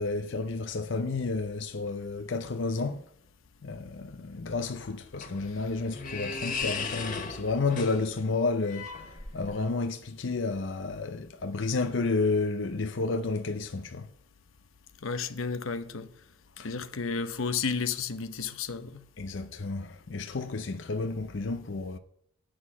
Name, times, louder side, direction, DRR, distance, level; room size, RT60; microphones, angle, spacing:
voice 1, 0.0-3.0 3.6-14.1 16.6-16.8 19.2-22.0, left 3 dB, 65° left, 0.6 m, -31 dB
sound 1, 4.8-9.7, left 4 dB, 40° left, 1.6 m, -37 dB
voice 2, 15.0-16.1 16.6-19.0, left 5 dB, 90° left, 0.9 m, -32 dB
9.5 x 6.3 x 8.3 m
head